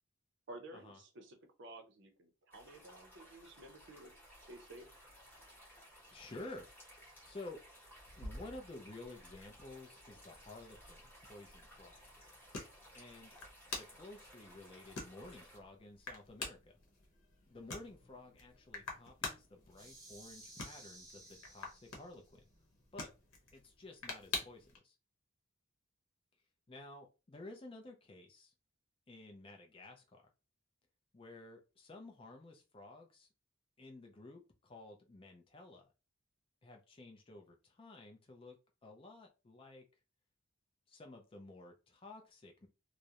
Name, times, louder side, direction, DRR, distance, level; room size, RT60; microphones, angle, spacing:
voice 1, 0.5-4.1 4.5-4.9, right 2 dB, 55° right, 5 dB, 0.5 m, -53 dB
sound 1, 2.5-15.6, equal, 10° left, 1.0 m, -59 dB
voice 2, 6.1-6.7 7.3-7.6 8.2-12.0 12.9-13.4 13.7-16.8 17.5-22.5 22.9-23.1 23.5-24.9 26.7-28.5 29.1-30.2 31.1-33.3 33.8-35.9 36.6-38.6 38.8-39.8 40.9-42.7, left 2 dB, 25° left, 3 dB, 0.4 m, -52 dB
sound 2, 8.1-24.8, left 3 dB, 90° left, 0.8 m, -49 dB
sound 3, 19.7-22.3, right 2 dB, 15° right, 0.7 m, -56 dB
2.4 x 2.0 x 2.8 m, 0.30 s
head